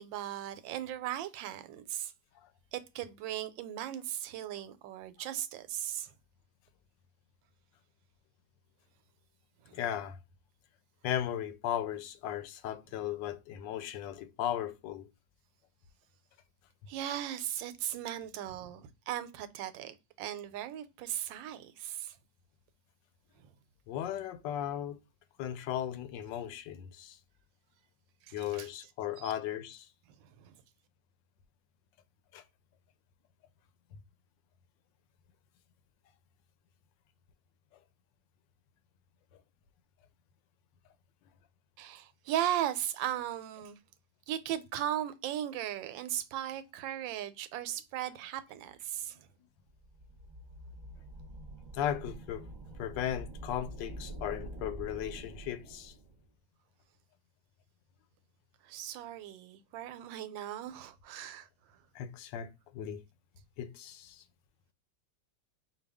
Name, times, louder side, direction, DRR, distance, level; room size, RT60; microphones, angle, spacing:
voice 1, 0.0-2.1 2.7-6.1 9.6-9.8 16.9-22.2 23.4-23.5 28.3-28.7 29.2-29.3 30.2-30.5 41.8-43.8 44.3-49.3 58.6-61.5, right 11 dB, 85° right, 1.3 m, -37 dB
voice 2, 9.7-10.2 11.0-15.1 23.9-25.0 25.4-27.2 28.3-29.9 32.3-32.4 51.7-52.5 52.8-55.9 61.9-62.5 62.7-63.0 63.6-64.2, left 10 dB, 80° left, 1.3 m, -36 dB
sound 1, 49.7-56.2, right 1 dB, 35° right, 0.8 m, -46 dB
5.1 x 2.3 x 3.3 m
omnidirectional pair, 2.0 m